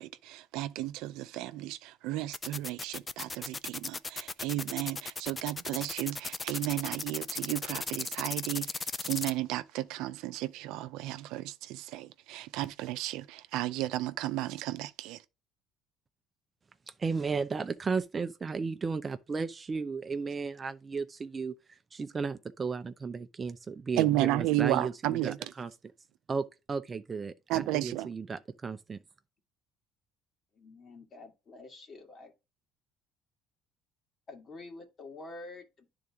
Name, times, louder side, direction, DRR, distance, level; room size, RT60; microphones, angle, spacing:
voice 1, 0.0-15.2 24.0-25.4 27.5-28.1, right 16 dB, 80° right, 0.6 m, -33 dB
sound 1, 2.3-9.3, left 3 dB, 20° left, 0.4 m, -36 dB
voice 2, 17.0-25.7 26.3-29.0, right 5 dB, 25° right, 0.5 m, -34 dB
voice 3, 30.6-32.3 34.3-35.9, left 2 dB, 35° left, 2.1 m, -48 dB
10.0 x 3.9 x 3.6 m
cardioid pair, 105°, 0 cm